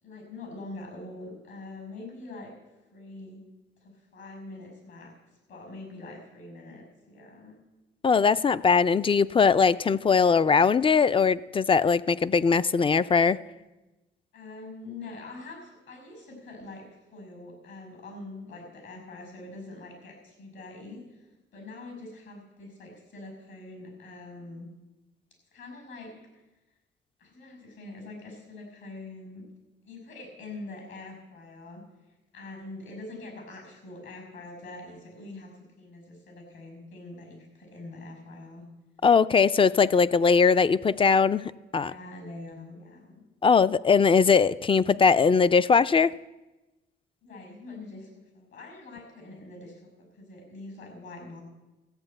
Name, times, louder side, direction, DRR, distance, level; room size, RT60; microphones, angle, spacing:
voice 1, 0.0-3.4 3.8-5.1 5.5-7.6 14.3-24.7 25.5-26.2 27.2-29.4 29.8-31.8 32.3-38.7 41.8-43.2 47.2-51.4, left 2 dB, 70° left, 5 dB, 5.8 m, -44 dB
voice 2, 8.0-13.4 39.0-41.9 43.4-46.1, left 5 dB, 25° left, 16 dB, 0.4 m, -21 dB
14.0 x 7.3 x 8.9 m, 1.1 s
cardioid pair, 90°, 20 cm